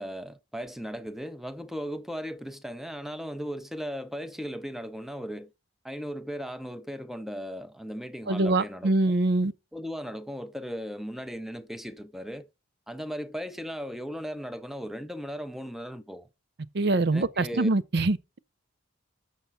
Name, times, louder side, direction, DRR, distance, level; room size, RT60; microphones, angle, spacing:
voice 1, 0.0-5.5 5.8-9.2 9.7-12.5 12.9-16.3 17.1-17.7, equal, ahead, 0.6 m, -37 dB
voice 2, 8.3-9.5 16.7-18.4, right 2 dB, 55° right, 0.6 m, -24 dB
6.8 x 6.8 x 5.7 m
head